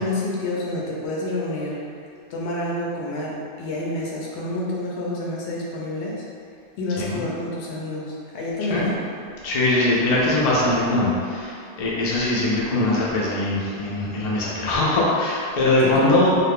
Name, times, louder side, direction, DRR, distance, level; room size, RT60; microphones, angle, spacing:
voice 1, 0.0-1.8 2.3-6.2 6.8-8.9 15.8-16.2, left 1 dB, 80° left, -4 dB, 0.9 m, -28 dB
voice 2, 9.4-16.4, left 2 dB, 45° left, -5 dB, 0.5 m, -21 dB
2.5 x 2.4 x 3.4 m, 2.4 s
omnidirectional pair, 1.2 m